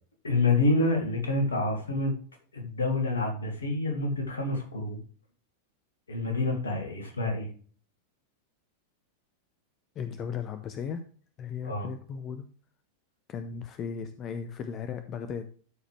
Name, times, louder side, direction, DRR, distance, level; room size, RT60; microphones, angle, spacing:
voice 1, 0.2-2.1 2.5-5.0 6.1-7.5 11.6-11.9, left 2 dB, 75° left, 3 dB, 2.1 m, -27 dB
voice 2, 10.0-11.0 11.4-12.5 13.3-15.5, left 7 dB, 30° left, 9 dB, 0.7 m, -36 dB
12.5 x 5.1 x 3.2 m, 0.42 s
figure-of-eight pair, 90°, 0 cm